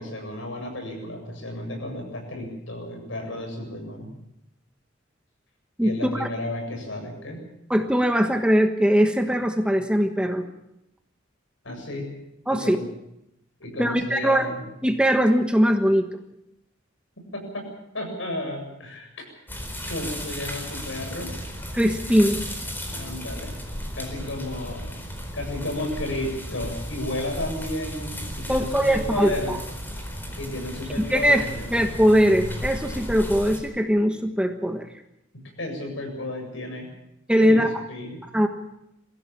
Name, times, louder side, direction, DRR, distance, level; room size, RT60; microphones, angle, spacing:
voice 1, 0.0-4.1 5.8-7.4 11.6-12.1 12.5-12.9 13.6-14.7 17.3-17.6 17.9-19.1 19.9-21.3 22.9-23.5 23.9-24.8 25.3-29.6 30.4-31.7 35.6-36.9 37.4-37.6 37.9-38.2, left 1 dB, 75° left, 2 dB, 7.9 m, -32 dB
voice 2, 5.8-6.3 7.7-10.4 12.5-12.8 13.8-14.5 14.8-16.1 21.7-22.4 28.5-29.6 31.1-31.4 31.7-34.9 37.3-37.7 38.3-38.5, equal, 5° right, 6 dB, 1.3 m, -21 dB
sound 1, 19.5-33.6, equal, 10° left, 4.5 m, -34 dB
22.5 x 16.0 x 8.6 m, 0.84 s
head